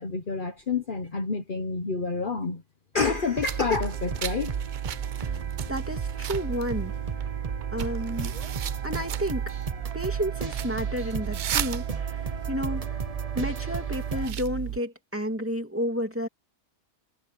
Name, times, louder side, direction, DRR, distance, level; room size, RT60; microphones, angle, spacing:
voice 1, 0.0-2.6 2.9-4.5, left 4 dB, 45° left, 1.2 m, -28 dB
sound 1, 2.9-14.3, right 4 dB, 35° right, 1.0 m, -36 dB
sound 2, 3.4-14.8, right 11 dB, 60° right, 0.5 m, -33 dB
voice 2, 5.7-6.9 7.7-8.3 8.8-9.5 9.9-11.8 12.5-13.0 13.3-16.3, equal, 10° right, 2.9 m, -31 dB
omnidirectional pair, 1.2 m